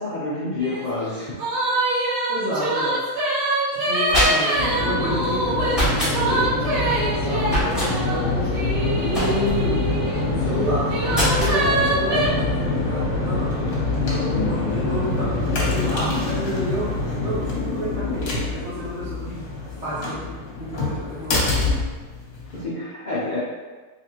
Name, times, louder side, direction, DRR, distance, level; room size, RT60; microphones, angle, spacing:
voice 1, 0.0-1.3 14.3-14.8 22.5-23.4, left 3 dB, 45° left, -10 dB, 0.6 m, -28 dB
sound 1, 0.6-0.8 1.1-10.2 10.8-12.3, right 2 dB, 80° right, 1.5 m, -24 dB
voice 2, 2.3-3.0 3.7-8.4 8.9-9.8 10.2-13.5 13.9-16.9 17.2-19.5 19.8-21.7, equal, 55° right, -8 dB, 1.3 m, -30 dB
sound 2, 3.8-4.7 5.7-6.2 7.5-7.9 9.1-9.7 11.1-11.6, equal, ahead, 1.2 m, -23 dB
sound 3, 4.6-22.6, left 2 dB, 75° left, 1.3 m, -25 dB
3.4 x 3.2 x 2.9 m, 1.3 s
omnidirectional pair, 1.5 m